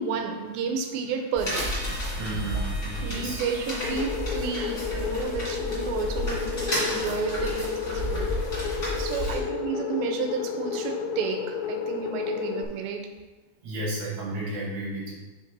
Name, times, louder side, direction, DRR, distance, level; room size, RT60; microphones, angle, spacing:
voice 1, 0.0-1.9 2.5-2.7 3.0-8.3 9.0-13.1, right 6 dB, 80° right, 5 dB, 2.2 m, -32 dB
sound 1, 1.4-9.4, equal, 30° left, 1.4 m, -31 dB
Harmonica, 1.5-6.2, right 1 dB, 30° right, 1.3 m, -45 dB
voice 2, 2.2-3.4 9.0-9.4 13.6-15.1, right 1 dB, 60° right, -3 dB, 2.2 m, -33 dB
sound 2, 3.8-12.6, left 7 dB, 80° left, 2.3 m, -32 dB
5.9 x 5.5 x 4.0 m, 1.2 s
omnidirectional pair, 4.6 m